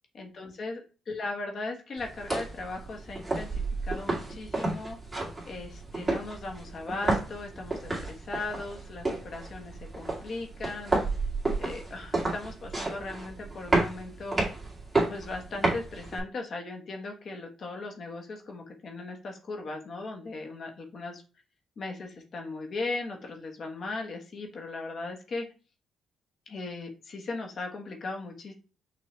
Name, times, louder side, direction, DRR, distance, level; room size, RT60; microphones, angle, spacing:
voice 1, 0.1-5.0 5.5-11.1 11.6-14.4 15.1-21.2 21.8-25.5 26.5-28.5, left 3 dB, 55° left, 2 dB, 1.2 m, -38 dB
sound 1, 2.0-16.2, right 2 dB, 15° right, 2.2 m, -31 dB
5.9 x 2.6 x 3.2 m, 0.34 s
cardioid pair, 90°, 0 cm